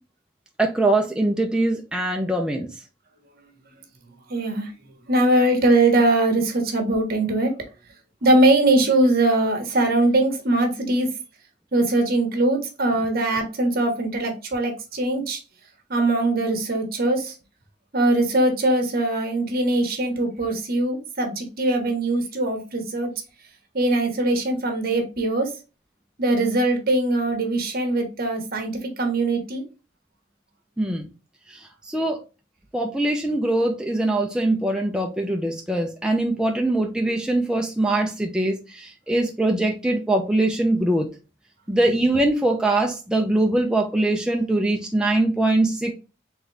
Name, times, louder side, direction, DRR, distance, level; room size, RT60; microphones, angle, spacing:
voice 1, 0.6-2.7 30.8-31.1 31.5-32.2 32.7-41.1 41.7-45.9, right 1 dB, 5° right, 0.5 m, -22 dB
voice 2, 4.3-4.7 5.1-7.5 8.2-11.1 11.7-15.4 15.9-17.3 17.9-23.1 23.7-25.5 26.2-29.6, right 2 dB, 50° right, 1.2 m, -21 dB
4.0 x 3.5 x 3.2 m
head